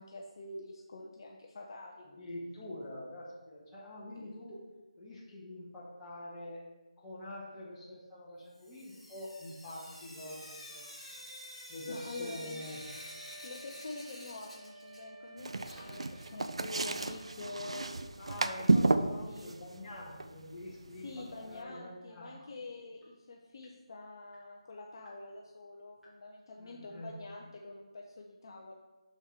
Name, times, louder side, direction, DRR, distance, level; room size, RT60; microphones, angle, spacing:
voice 1, 0.0-2.3 4.1-4.6 10.1-10.2 11.9-12.6 13.4-18.0 19.3-19.5 21.0-28.7, left 2 dB, 40° left, -1 dB, 0.7 m, -46 dB
voice 2, 2.2-4.6 5.0-6.7 7.0-10.9 11.7-12.8 18.2-22.4 26.6-27.1, left 1 dB, 15° left, -6 dB, 1.7 m, -45 dB
Sink (filling or washing) / Drip, 8.5-15.3 15.5-17.5 18.7-18.8 19.1-19.2 19.4-19.5 22.4-22.5 23.0-23.1 23.6-23.7 24.3-24.4 25.1-25.2 26.0-26.1, equal, ahead, 1.2 m, -50 dB
Wind instrument woodwind instrument, 12.5-16.7, right 2 dB, 25° right, 0.9 m, -53 dB
sound 1, 15.4-21.6, right 3 dB, 60° right, 0.5 m, -32 dB
7.0 x 6.1 x 3.5 m, 1.2 s
figure-of-eight pair, 155°, 3 cm